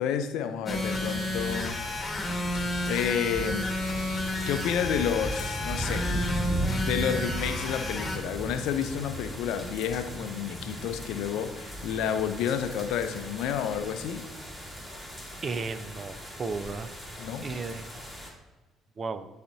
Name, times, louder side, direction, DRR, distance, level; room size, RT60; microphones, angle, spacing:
voice 1, 0.0-2.3 2.9-3.7 4.5-6.1 6.5-14.2 17.2-17.5, left 8 dB, 70° left, 8 dB, 0.5 m, -30 dB
sound 1, 0.7-8.2, left 1 dB, 25° left, 1.3 m, -32 dB
sound 2, 0.7-18.3, right 1 dB, 10° right, 2.4 m, -37 dB
voice 2, 15.4-16.9 17.4-17.9 19.0-19.3, right 4 dB, 40° right, 11 dB, 0.6 m, -34 dB
11.0 x 4.3 x 2.7 m, 1.2 s
hypercardioid pair, 55°, 0 cm